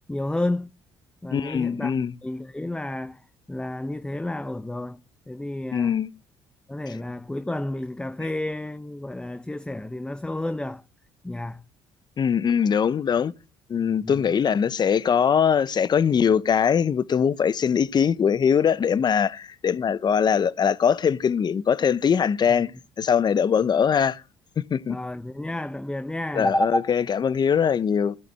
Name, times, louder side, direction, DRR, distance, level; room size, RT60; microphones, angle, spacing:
voice 1, 0.1-0.7 1.2-1.9 2.2-3.2 3.5-5.0 5.3-6.0 6.7-10.8 11.2-11.6 14.0-14.3 24.9-26.9, left 1 dB, 10° left, 0.7 m, -30 dB
voice 2, 1.3-2.1 5.7-6.1 6.9-7.0 12.2-13.3 13.7-22.7 23.0-24.2 24.6-25.0 26.3-28.2, left 7 dB, 40° left, 0.8 m, -22 dB
15.0 x 12.0 x 3.5 m
supercardioid pair, 65°, 11 cm